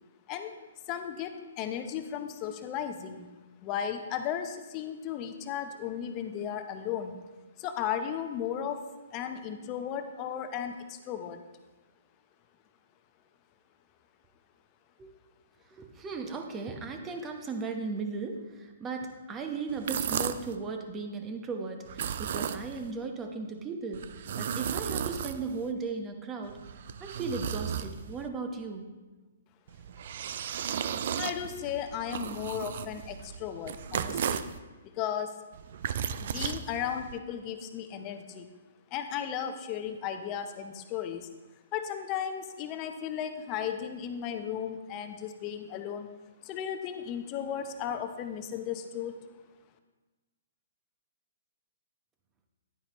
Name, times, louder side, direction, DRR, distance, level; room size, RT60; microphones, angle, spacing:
voice 1, 0.9-3.3 3.6-7.2 7.6-8.8 9.1-11.4 31.2-34.4 34.8-35.4 36.2-38.5 38.9-41.3 41.7-46.1 46.4-49.2, left 9 dB, 30° left, 7 dB, 0.8 m, -35 dB
voice 2, 15.7-24.1 24.4-26.6 27.0-28.8, right 4 dB, 20° right, 4 dB, 1.1 m, -36 dB
sound 1, 19.7-20.6 21.9-22.9 23.9-25.7 26.4-28.3 29.7-34.6 35.5-37.2, right 8 dB, 55° right, 0.4 m, -35 dB
10.5 x 9.3 x 3.1 m, 1.2 s
hypercardioid pair, 135°, 0 cm